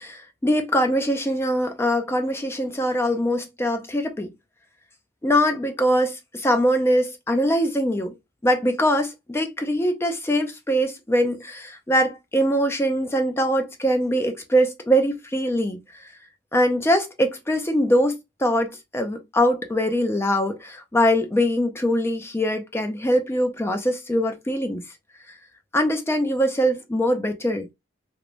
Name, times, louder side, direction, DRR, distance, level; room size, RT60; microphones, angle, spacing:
voice 1, 0.0-4.3 5.2-8.1 8.4-16.0 16.5-24.8 25.7-27.7, equal, 10° left, 0.3 m, -22 dB
3.0 x 2.1 x 2.4 m
head